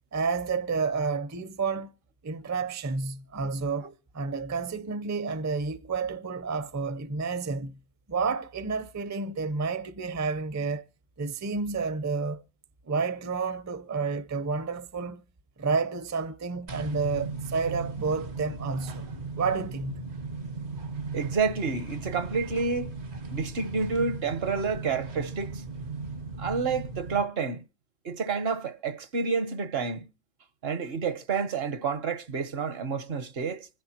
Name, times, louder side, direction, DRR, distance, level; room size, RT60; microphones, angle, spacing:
voice 1, 0.1-1.9 2.2-7.7 8.1-10.8 11.2-12.4 12.9-15.2 15.6-19.0 19.4-20.1, right 4 dB, 20° right, 0.5 m, -30 dB
sound 1, 16.7-27.2, right 3 dB, 90° right, 1.8 m, -37 dB
voice 2, 21.1-22.9 23.3-25.6 26.4-27.6 28.0-30.1 30.6-33.7, right 5 dB, 70° right, 1.2 m, -29 dB
25.5 x 10.5 x 2.9 m
omnidirectional pair, 1.1 m